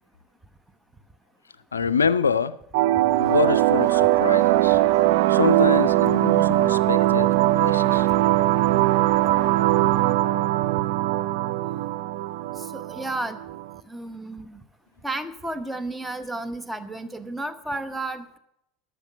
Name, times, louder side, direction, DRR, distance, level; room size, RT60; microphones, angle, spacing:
voice 1, 1.7-2.6 3.2-4.8 5.3-7.3 7.6-8.1, left 5 dB, 85° left, 0.3 m, -25 dB
sound 1, 2.7-13.7, right 16 dB, 65° right, 0.4 m, -21 dB
sound 2, 3.1-10.2, right 3 dB, 35° right, 3.8 m, -50 dB
voice 2, 12.6-13.4 13.9-14.6 15.0-18.4, right 2 dB, 10° right, 1.0 m, -32 dB
12.0 x 6.5 x 7.7 m
figure-of-eight pair, 75°, 0 cm